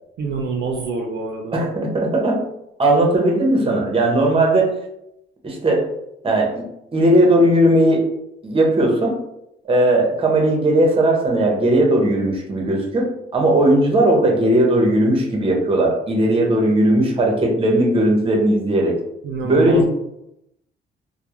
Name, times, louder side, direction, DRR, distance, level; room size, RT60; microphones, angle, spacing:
voice 1, 0.2-1.6 19.2-19.9, right 4 dB, 60° right, 1 dB, 0.4 m, -26 dB
voice 2, 1.5-2.4 2.8-4.8 5.4-5.9 6.2-8.1 8.4-9.2 9.6-19.0 19.4-19.9, right 1 dB, 30° right, 1 dB, 0.7 m, -17 dB
2.2 x 2.0 x 2.9 m, 0.81 s
cardioid pair, 90°, 20 cm